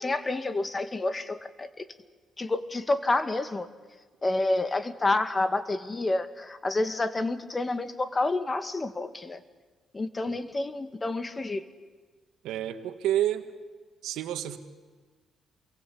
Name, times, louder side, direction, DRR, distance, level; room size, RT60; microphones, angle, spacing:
voice 1, 0.0-1.9 2.4-3.7 4.2-9.4 9.9-11.6, left 2 dB, 25° left, 11 dB, 1.9 m, -29 dB
voice 2, 12.4-13.5 14.0-14.6, right 12 dB, 90° right, 9 dB, 1.8 m, -29 dB
28.5 x 23.0 x 8.7 m, 1.4 s
cardioid pair, 90°, 0 cm